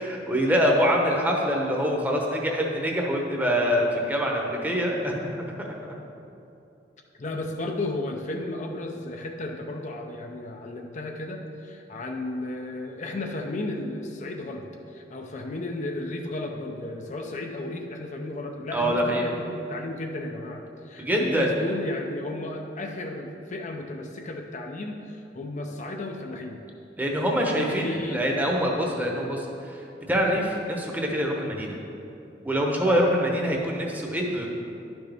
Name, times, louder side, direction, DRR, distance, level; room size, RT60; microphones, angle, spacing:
voice 1, 0.0-5.3 5.6-5.7 18.7-19.3 21.0-21.5 27.0-29.8 30.1-31.8 32.4-34.5, equal, 10° right, -1 dB, 0.9 m, -25 dB
voice 2, 7.2-26.6 27.3-28.2 32.8-33.0, left 2 dB, 45° left, 2 dB, 0.5 m, -34 dB
11.0 x 6.0 x 3.5 m, 2.7 s
head